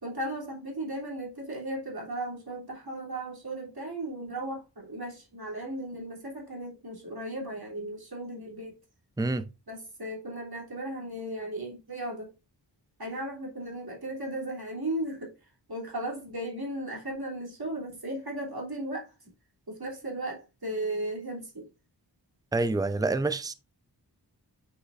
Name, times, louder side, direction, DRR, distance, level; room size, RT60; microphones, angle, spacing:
voice 1, 0.0-8.8 9.7-12.3 13.0-15.3 15.7-19.1 19.7-21.6, right 1 dB, 60° right, 3.2 m, -36 dB
voice 2, 22.5-23.5, right 3 dB, 10° right, 0.5 m, -27 dB
8.9 x 4.9 x 2.6 m
wide cardioid pair, 45°, 43 cm